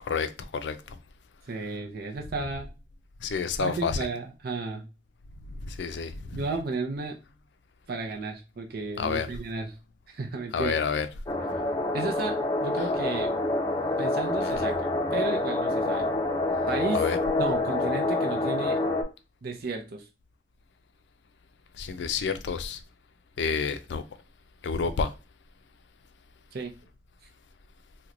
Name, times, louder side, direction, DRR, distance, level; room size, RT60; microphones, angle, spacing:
voice 1, 0.0-1.0 3.2-4.1 5.5-6.4 9.0-9.3 10.5-11.1 14.4-14.7 16.9-17.2 21.8-22.8 23.4-24.0 24.6-25.1, left 5 dB, 90° left, 0.4 m, -29 dB
voice 2, 1.5-2.7 3.6-4.8 6.3-7.2 7.9-9.7 10.1-10.8 11.9-13.3 14.0-16.1 16.7-17.0 17.4-18.8 19.4-20.1 26.5-26.7, right 3 dB, 60° right, 0.5 m, -33 dB
sound 1, 11.3-19.0, left 2 dB, 25° left, 0.5 m, -27 dB
3.0 x 2.2 x 3.7 m
head